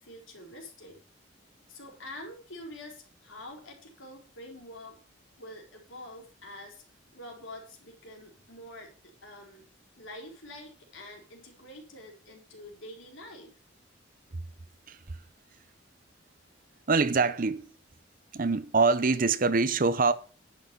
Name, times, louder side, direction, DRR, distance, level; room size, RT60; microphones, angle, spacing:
voice 1, 0.0-1.0 1.7-5.0 5.4-6.8 7.1-9.7 9.9-13.6, left 1 dB, 90° left, 4.1 m, -46 dB
voice 2, 16.9-17.7 18.3-20.1, right 4 dB, 45° right, 0.7 m, -24 dB
10.5 x 6.4 x 6.8 m
head